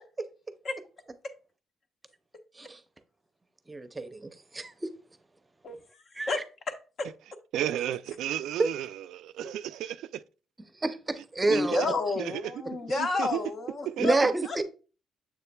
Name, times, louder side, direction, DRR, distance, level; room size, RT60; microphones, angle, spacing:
voice 1, 3.7-4.9 6.1-6.3 8.6-8.7 10.8-11.8 14.0-14.6, right 3 dB, 20° right, 0.7 m, -28 dB
voice 2, 5.6-6.4 11.5-14.1 14.4-14.6, left 3 dB, 50° left, 1.1 m, -30 dB
voice 3, 7.5-10.2 11.5-11.9 12.2-12.5 12.9-13.4 13.9-14.3, right 12 dB, 85° right, 0.3 m, -33 dB
7.1 x 6.7 x 2.3 m
cardioid pair, 90°, 0 cm